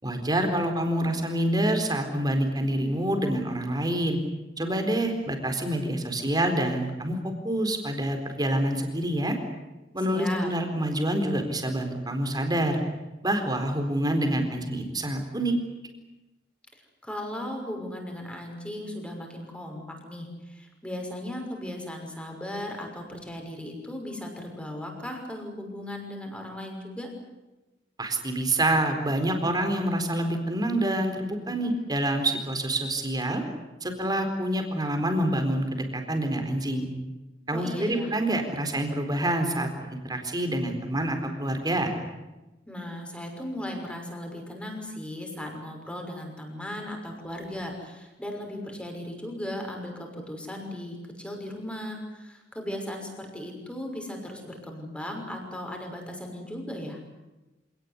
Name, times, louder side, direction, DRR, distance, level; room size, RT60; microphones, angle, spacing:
voice 1, 0.0-4.2 4.6-7.2 7.4-9.4 9.9-12.8 13.2-15.5 28.0-33.4 33.8-36.9 37.5-41.9, right 1 dB, 20° right, 5 dB, 4.3 m, -27 dB
voice 2, 10.1-10.5 16.7-27.1 37.5-38.1 42.7-57.0, left 1 dB, 5° left, 2 dB, 6.0 m, -37 dB
27.0 x 18.5 x 9.9 m, 1.1 s
head